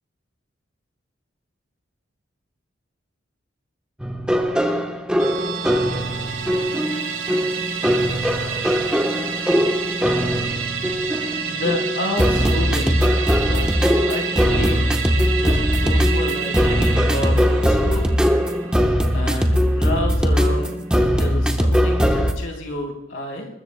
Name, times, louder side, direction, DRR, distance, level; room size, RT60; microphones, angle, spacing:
Happy Music, 4.0-22.3, equal, 5° right, 1.0 m, -20 dB
Musical instrument, 5.2-19.9 20.2-20.3, right 7 dB, 90° right, 2.6 m, -30 dB
voice 1, 11.5-13.0 13.4-13.7 14.1-14.8 15.3-18.1 19.1-23.5, left 1 dB, 85° left, 1 dB, 4.2 m, -29 dB
22.5 x 20.5 x 2.3 m, 0.92 s
head